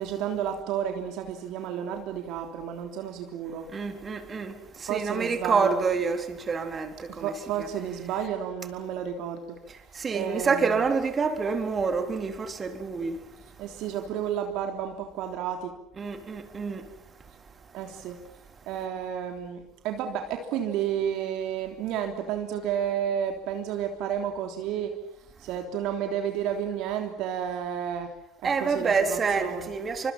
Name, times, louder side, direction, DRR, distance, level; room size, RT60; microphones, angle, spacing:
voice 1, 0.0-3.7 4.9-5.8 7.2-9.4 10.1-10.8 13.6-15.7 17.7-18.2 18.7-24.9 25.4-28.1 28.6-29.7, right 9 dB, 55° right, 3.4 m, -31 dB
voice 2, 3.7-7.3 7.6-7.7 9.9-13.2 16.0-16.9 28.4-30.1, right 5 dB, 30° right, 4.0 m, -27 dB
29.5 x 26.0 x 5.9 m
figure-of-eight pair, 65°, 0 cm